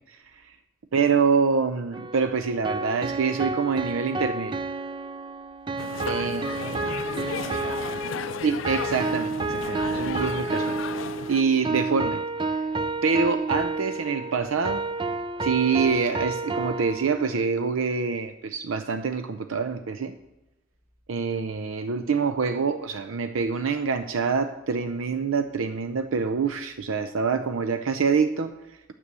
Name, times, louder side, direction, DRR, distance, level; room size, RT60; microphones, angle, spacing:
voice 1, 0.1-0.5 0.9-4.5 6.0-6.4 6.7-6.8 8.4-12.2 12.5-12.7 13.0-14.9 15.4-20.1 21.1-28.5, right 5 dB, 85° right, 9 dB, 0.5 m, -26 dB
sound 1, 1.9-17.4, right 3 dB, 25° right, 0.3 m, -30 dB
sound 2, 5.8-11.4, left 7 dB, 75° left, 0.4 m, -34 dB
voice 2, 6.2-8.5, right 1 dB, 45° right, -1 dB, 3.0 m, -43 dB
9.7 x 7.7 x 6.7 m, 1.0 s
head